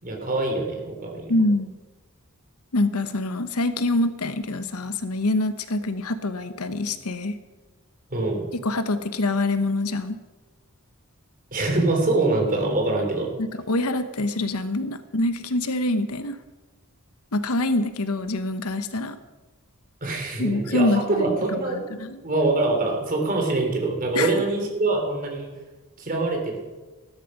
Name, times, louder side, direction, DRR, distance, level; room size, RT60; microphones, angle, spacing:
voice 1, 0.0-1.3 8.1-8.5 11.5-13.3 20.0-21.9 22.2-25.5 26.0-26.6, right 2 dB, 40° right, 2 dB, 3.2 m, -24 dB
voice 2, 1.3-1.7 2.7-7.4 8.6-10.2 13.4-16.4 17.3-19.2 20.4-21.3 21.9-22.2 24.1-24.3, left 2 dB, 75° left, 10 dB, 1.0 m, -25 dB
14.5 x 12.5 x 5.4 m, 1.2 s
head